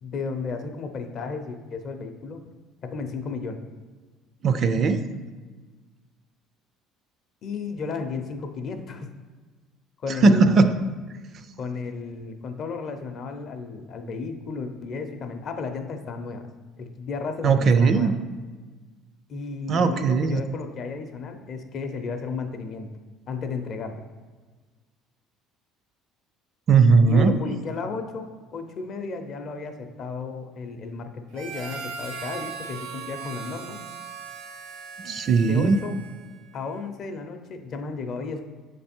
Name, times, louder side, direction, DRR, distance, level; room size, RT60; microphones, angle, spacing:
voice 1, 0.0-2.4 2.8-3.6 7.4-9.1 10.0-10.6 11.6-16.5 16.8-18.1 19.3-22.9 23.3-24.0 27.1-33.8 35.4-36.0 36.5-38.4, left 4 dB, 45° left, 6 dB, 0.6 m, -33 dB
voice 2, 4.4-5.0 10.2-10.7 17.4-18.2 19.7-20.4 26.7-27.4 35.0-35.8, right 4 dB, 40° right, 10 dB, 0.3 m, -18 dB
Harmonica, 31.3-36.3, right 5 dB, 80° right, 0.6 m, -38 dB
7.5 x 3.3 x 4.3 m, 1.4 s
cardioid pair, 145°, 0 cm